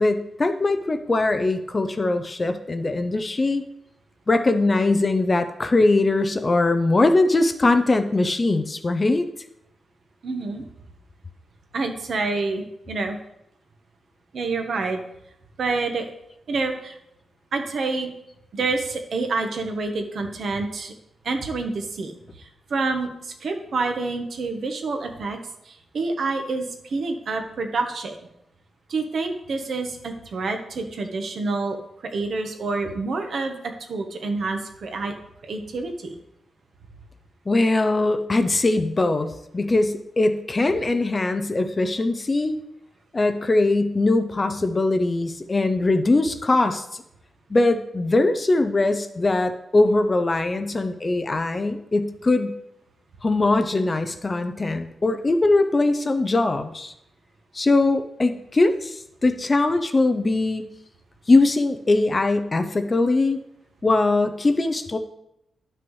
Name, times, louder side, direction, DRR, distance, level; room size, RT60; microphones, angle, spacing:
voice 1, 0.0-3.6 4.3-9.3 37.5-42.6 43.1-47.0 47.5-52.5 53.2-56.9 57.5-60.7 61.3-63.4 63.8-65.0, left 2 dB, 20° left, 9 dB, 0.4 m, -21 dB
voice 2, 10.2-10.6 11.7-13.2 14.3-15.0 15.6-16.1 16.5-17.0 17.5-18.1 18.5-20.9 21.2-25.4 25.6-28.1 28.9-31.8 32.1-33.6 33.9-35.1 35.4-36.1, right 3 dB, 55° right, 5 dB, 1.0 m, -27 dB
11.0 x 5.9 x 3.1 m, 0.81 s
wide cardioid pair, 180°, 0 cm